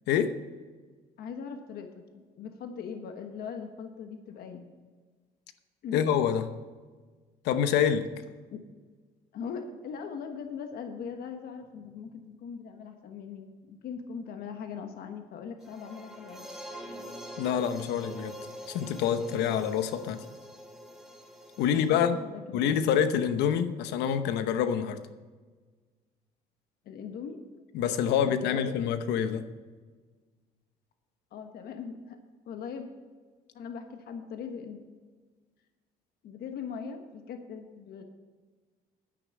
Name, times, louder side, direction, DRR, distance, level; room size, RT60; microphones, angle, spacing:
voice 1, 1.2-4.7 5.8-6.0 8.5-8.6 9.3-16.5 21.9-23.0 26.8-27.4 28.2-28.7 31.3-32.2 32.4-32.9 33.5-34.8 36.2-38.0, left 6 dB, 65° left, 6 dB, 1.3 m, -40 dB
voice 2, 5.9-6.4 7.4-8.1 17.4-18.3 18.7-20.2 21.6-22.2 22.5-25.0 27.7-29.4, left 8 dB, 85° left, 10 dB, 0.9 m, -26 dB
sound 1, 15.6-22.0, equal, ahead, 2.4 m, -45 dB
10.0 x 9.4 x 6.6 m, 1.4 s
cardioid pair, 110°, 17 cm